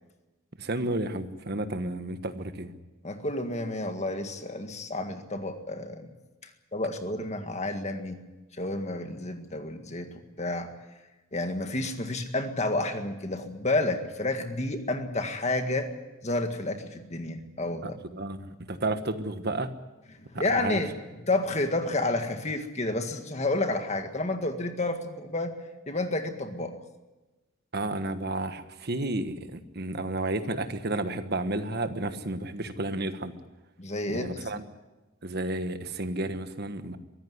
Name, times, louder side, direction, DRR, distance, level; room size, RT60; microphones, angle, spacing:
voice 1, 0.6-2.7 17.8-19.7 20.3-20.8 27.7-33.3 34.1-34.6 35.2-37.0, right 2 dB, 50° right, 9 dB, 1.4 m, -32 dB
voice 2, 3.0-6.1 6.4-8.2 8.5-10.7 11.3-15.9 16.2-18.0 20.1-20.9 21.2-25.5 25.9-26.8 33.8-34.3, left 2 dB, 30° left, 6 dB, 1.8 m, -30 dB
23.5 x 15.0 x 9.6 m, 1.1 s
head